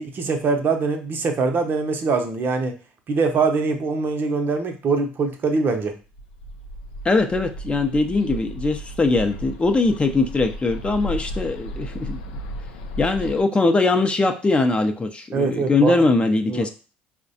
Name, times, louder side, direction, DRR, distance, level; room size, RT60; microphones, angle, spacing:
voice 1, 0.0-2.8 3.1-5.9 15.3-16.0 16.5-16.7, right 4 dB, 45° right, 6 dB, 0.6 m, -23 dB
Bird, 6.1-13.4, equal, 80° left, 0.4 m, -34 dB
voice 2, 7.0-12.2 13.0-16.7, left 3 dB, 25° left, 6 dB, 0.5 m, -21 dB
4.6 x 2.1 x 2.7 m, 0.35 s
hypercardioid pair, 65°, 5 cm